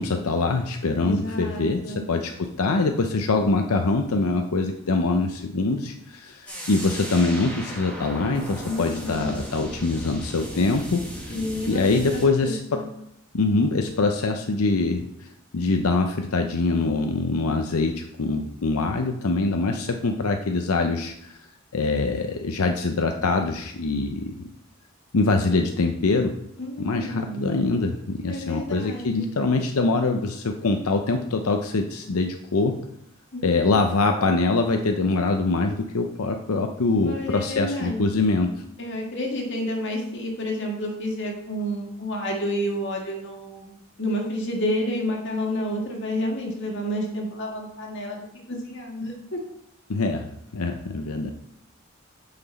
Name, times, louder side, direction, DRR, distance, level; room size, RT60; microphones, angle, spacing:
voice 1, 0.0-11.0 11.7-12.8 13.3-15.3 15.5-21.4 21.7-24.5 25.1-26.4 26.8-32.8 33.4-38.5 49.9-50.3 50.5-51.3, left 3 dB, 90° left, 4 dB, 0.7 m, -24 dB
voice 2, 1.0-2.1 8.7-9.3 11.3-12.9 26.6-27.5 28.3-29.3 33.3-33.4 37.0-38.0 38.8-49.4, left 1 dB, 55° left, 0 dB, 1.9 m, -30 dB
sound 1, 6.5-12.2, equal, 5° left, 1.7 m, -36 dB
8.8 x 5.8 x 4.1 m, 0.77 s
head